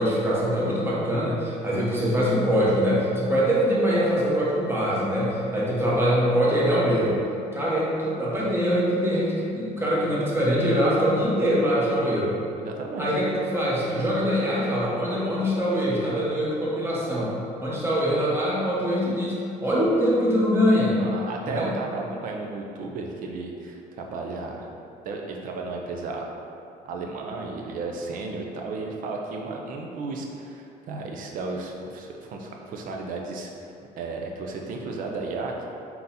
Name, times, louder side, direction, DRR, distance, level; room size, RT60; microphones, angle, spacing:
voice 1, 0.0-7.2 7.5-12.3 13.0-21.0 21.4-21.7, equal, 15° right, -6 dB, 1.0 m, -23 dB
voice 2, 12.6-13.1 21.0-24.7 25.0-26.4 26.8-33.7 34.0-35.7, right 3 dB, 65° right, 1 dB, 0.6 m, -34 dB
3.8 x 2.9 x 4.0 m, 2.6 s
cardioid pair, 115°, 15 cm